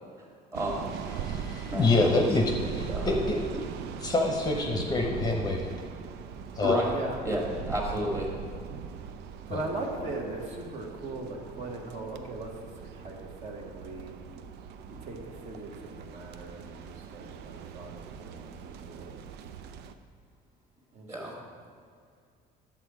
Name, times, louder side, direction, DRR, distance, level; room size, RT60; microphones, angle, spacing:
voice 1, 0.5-0.9 1.7-2.1 2.9-3.1 6.6-7.0 7.2-8.3 21.1-21.3, right 1 dB, 20° right, -1 dB, 1.7 m, -31 dB
sound 1, 0.5-19.9, right 7 dB, 80° right, 0.6 m, -40 dB
voice 2, 1.2-3.4 4.0-5.7 6.5-6.8 9.5-9.6, left 2 dB, 25° left, 1 dB, 0.8 m, -26 dB
voice 3, 9.5-14.1 14.9-19.1 20.9-21.3, right 2 dB, 40° right, 0 dB, 1.4 m, -39 dB
10.0 x 7.3 x 4.8 m, 2.1 s
cardioid pair, 160°, 17 cm